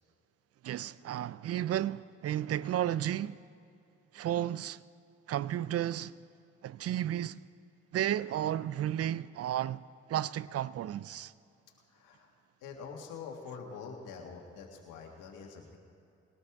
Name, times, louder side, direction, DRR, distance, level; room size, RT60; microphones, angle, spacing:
voice 1, 0.6-3.4 4.1-4.8 5.3-6.1 6.6-7.4 7.9-9.8 10.1-11.3, right 11 dB, 50° right, 0.5 m, -33 dB
voice 2, 11.9-12.3 12.6-15.8, left 5 dB, 75° left, 1.8 m, -45 dB
22.0 x 18.0 x 3.5 m
hypercardioid pair, 45°, 32 cm